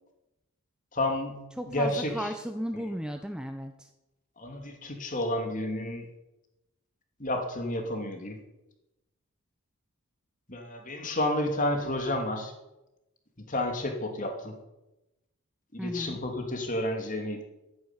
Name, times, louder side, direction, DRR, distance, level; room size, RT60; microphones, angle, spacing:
voice 1, 0.9-1.4 1.7-2.3 4.4-6.1 7.2-8.4 10.5-12.5 13.4-14.6 15.7-17.4, left 1 dB, 35° left, 4 dB, 2.8 m, -31 dB
voice 2, 1.6-3.9 15.8-16.2, equal, 5° right, 6 dB, 0.8 m, -35 dB
13.0 x 10.5 x 9.8 m, 0.97 s
head